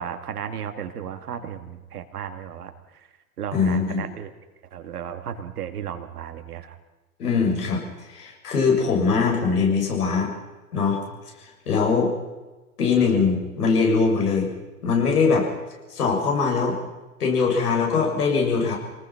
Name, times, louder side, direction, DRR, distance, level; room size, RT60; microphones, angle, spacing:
voice 1, 0.0-3.1 3.4-4.3 4.7-6.8, right 8 dB, 70° right, 7 dB, 2.3 m, -34 dB
voice 2, 3.5-4.0 7.2-10.3 10.7-11.0 11.7-12.1 12.8-14.5 14.8-15.5 15.9-16.8 17.2-18.8, left 5 dB, 75° left, 0 dB, 7.2 m, -21 dB
27.0 x 19.5 x 6.0 m, 1.2 s
hypercardioid pair, 105°, 47 cm